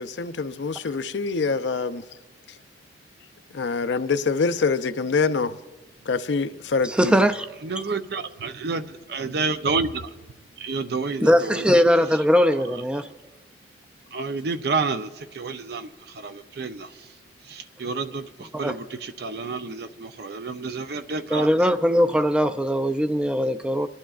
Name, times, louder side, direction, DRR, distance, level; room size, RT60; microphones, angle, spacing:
voice 1, 0.0-2.0 3.5-5.6 6.1-7.3, left 4 dB, 80° left, 0.5 m, -25 dB
voice 2, 6.9-7.5 11.2-13.1 18.6-18.8 21.3-23.9, equal, 5° right, 0.4 m, -20 dB
voice 3, 7.6-10.1 10.6-11.7 14.1-17.1 17.4-21.5, right 4 dB, 60° right, 0.5 m, -30 dB
28.5 x 11.5 x 2.4 m
head